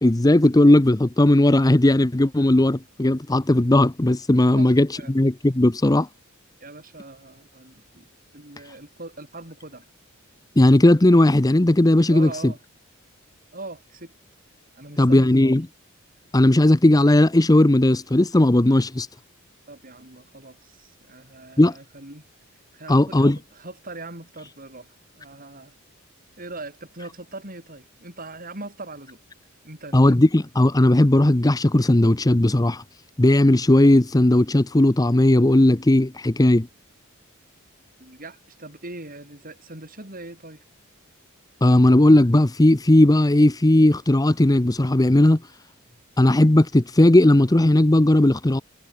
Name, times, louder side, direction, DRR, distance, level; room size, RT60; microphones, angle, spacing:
voice 1, 0.0-6.1 10.6-12.5 15.0-15.7 16.3-19.1 21.6-21.7 22.9-23.4 29.9-32.8 33.2-36.7 41.6-45.4 46.2-48.6, left 1 dB, 15° left, 0.7 m, -17 dB
voice 2, 4.5-5.1 6.6-8.1 8.3-9.9 12.1-12.6 13.5-14.1 14.8-15.6 19.7-22.3 22.7-25.7 26.4-29.2 29.6-30.2 38.0-40.6, right 2 dB, 40° right, 7.5 m, -41 dB
head